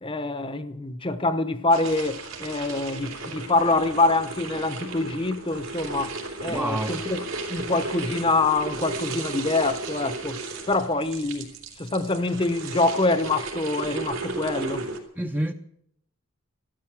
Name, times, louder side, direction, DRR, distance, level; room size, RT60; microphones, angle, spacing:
voice 1, 0.0-7.2 7.5-10.4 10.7-11.5 11.8-14.9, left 2 dB, 25° left, 0.8 m, -25 dB
sound 1, 1.7-15.0, right 3 dB, 80° right, 3.1 m, -35 dB
voice 2, 6.5-7.1 15.2-15.5, right 1 dB, 10° right, 0.6 m, -28 dB
14.0 x 12.5 x 7.2 m
head